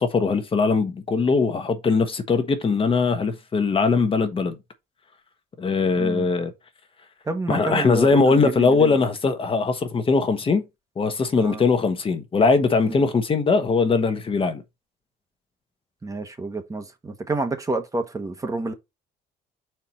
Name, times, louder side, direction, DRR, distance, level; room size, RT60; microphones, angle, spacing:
voice 1, 0.0-4.6 5.6-6.5 7.5-10.6 11.0-14.6, left 4 dB, 30° left, 1.1 m, -21 dB
voice 2, 6.0-6.3 7.2-8.9 11.3-11.6 12.9-13.1 16.0-18.7, right 3 dB, 20° right, 1.1 m, -29 dB
4.6 x 4.5 x 5.6 m
cardioid pair, 110°, 17 cm